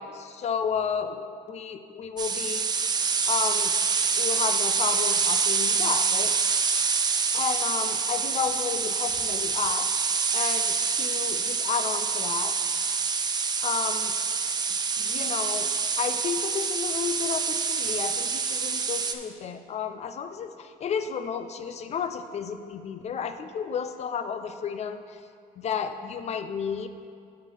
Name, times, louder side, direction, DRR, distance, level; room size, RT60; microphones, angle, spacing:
voice 1, 0.0-2.7 3.3-3.7 4.2-6.6 7.3-9.9 10.3-12.6 13.6-14.1 15.0-15.7 16.0-25.2 25.6-26.9, left 7 dB, 40° left, 9 dB, 0.5 m, -32 dB
sound 1, 2.2-19.1, right 5 dB, 25° right, 0.4 m, -26 dB
6.5 x 5.7 x 4.8 m, 2.2 s
cardioid pair, 110°, 17 cm